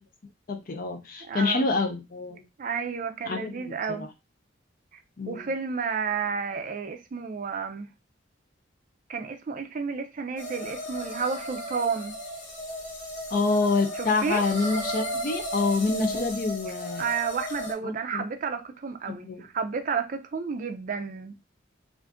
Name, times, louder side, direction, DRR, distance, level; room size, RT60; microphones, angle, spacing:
voice 1, 0.5-2.4 3.3-4.1 5.2-5.5 13.3-17.1 17.8-18.2 19.1-19.4, left 3 dB, 50° left, 0.5 m, -27 dB
voice 2, 1.2-1.7 2.6-4.1 5.3-7.9 9.1-12.2 13.9-14.4 17.0-21.3, right 5 dB, 45° right, 0.4 m, -31 dB
sound 1, 10.4-17.7, equal, 90° left, 1.2 m, -35 dB
2.5 x 2.5 x 3.4 m
head